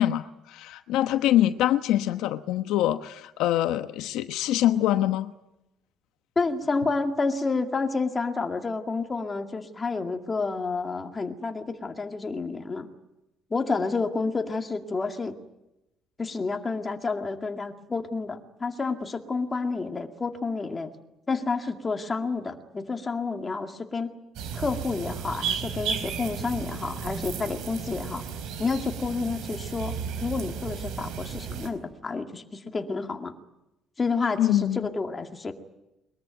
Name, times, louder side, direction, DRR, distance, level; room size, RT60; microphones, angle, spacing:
voice 1, 0.0-5.3 34.4-34.9, left 13 dB, 80° left, 10 dB, 1.1 m, -24 dB
voice 2, 6.4-12.9 13.5-15.3 16.2-20.9 21.3-24.1 24.5-28.2 28.6-33.3 34.0-35.5, left 4 dB, 15° left, 4 dB, 2.2 m, -29 dB
sound 1, 24.4-31.7, right 6 dB, 70° right, 4.4 m, -34 dB
22.5 x 22.0 x 9.2 m, 0.91 s
cardioid pair, 165°, 0 cm